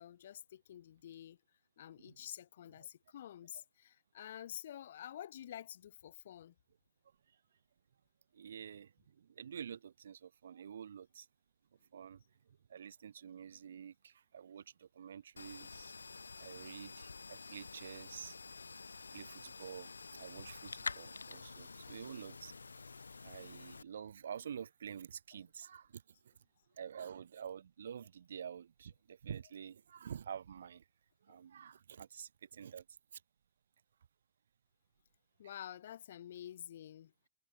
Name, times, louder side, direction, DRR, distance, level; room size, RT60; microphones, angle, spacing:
voice 1, 0.0-1.4 1.8-6.5 31.3-31.4 35.4-37.1, left 11 dB, 60° left, 0.5 m, -49 dB
voice 2, 8.3-11.3 11.9-15.9 16.4-18.4 19.1-22.5 23.2-26.3 26.8-30.8 31.2-32.9 33.1-33.2, right 8 dB, 65° right, 0.5 m, -49 dB
sound 1, 15.4-23.8, left 4 dB, 75° left, 1.2 m, -48 dB
figure-of-eight pair, 90°, 0 cm